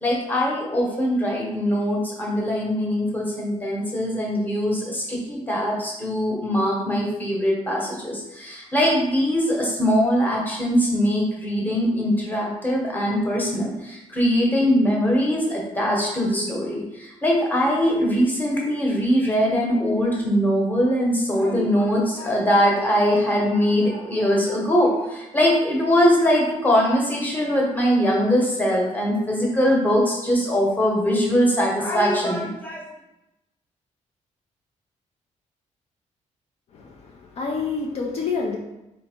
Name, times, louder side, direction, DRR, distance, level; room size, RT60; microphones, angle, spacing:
voice 1, 0.0-32.8, equal, 15° left, -2 dB, 1.0 m, -22 dB
voice 2, 36.7-38.6, left 4 dB, 55° left, 0 dB, 0.6 m, -28 dB
4.4 x 2.8 x 4.3 m, 0.92 s
cardioid pair, 165°, 13 cm